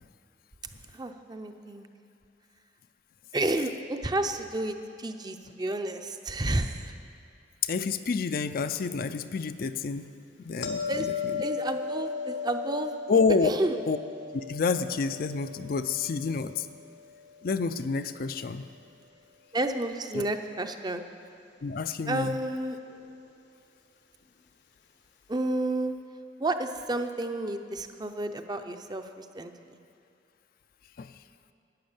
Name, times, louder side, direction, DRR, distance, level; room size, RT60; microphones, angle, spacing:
voice 1, 0.9-1.9 3.3-6.9 10.9-11.1 11.4-12.9 13.4-13.8 19.5-21.0 22.1-22.8 25.3-25.9 26.4-29.8, right 2 dB, 25° right, 7 dB, 0.6 m, -31 dB
voice 2, 7.6-10.0 10.4-11.4 13.1-13.5 13.9-14.0 14.3-16.7 17.4-18.6 20.1-20.3 21.6-22.4 31.0-31.1, left 4 dB, 55° left, 10 dB, 0.4 m, -28 dB
sound 1, 10.6-17.6 22.9-23.0, left 6 dB, 85° left, 1.2 m, -36 dB
11.5 x 9.6 x 7.2 m, 2.5 s
head